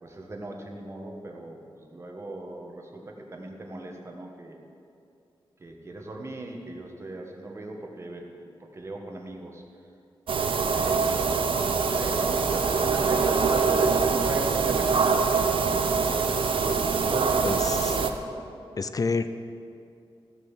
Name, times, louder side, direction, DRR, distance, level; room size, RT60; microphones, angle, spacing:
voice 1, 0.0-4.6 5.6-8.3 8.6-9.6 10.3-15.1 16.0-18.2, right 2 dB, 30° right, 1 dB, 1.5 m, -38 dB
sound 1, 10.3-18.1, right 5 dB, 70° right, 0.8 m, -24 dB
voice 2, 17.4-18.0 18.8-19.3, left 4 dB, 40° left, 11 dB, 0.6 m, -28 dB
15.0 x 6.8 x 7.3 m, 2.5 s
wide cardioid pair, 150°, 9 cm